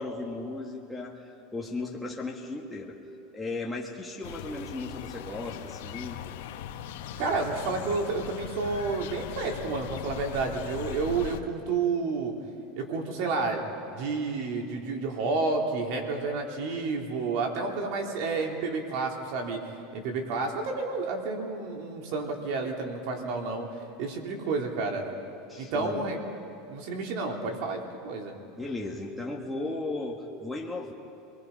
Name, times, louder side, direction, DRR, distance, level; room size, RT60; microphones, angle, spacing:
voice 1, 0.0-3.0 3.3-6.2 25.5-26.0 28.6-30.9, left 2 dB, 5° left, -2 dB, 1.7 m, -36 dB
sound 1, 4.2-11.4, left 10 dB, 80° left, 1.3 m, -39 dB
voice 2, 7.2-12.3 12.7-13.6 13.9-19.6 19.9-23.7 24.0-25.0 25.6-26.2 26.7-28.3, right 4 dB, 65° right, 1 dB, 3.3 m, -30 dB
28.0 x 21.5 x 5.6 m, 2.7 s
supercardioid pair, 130°, 0 cm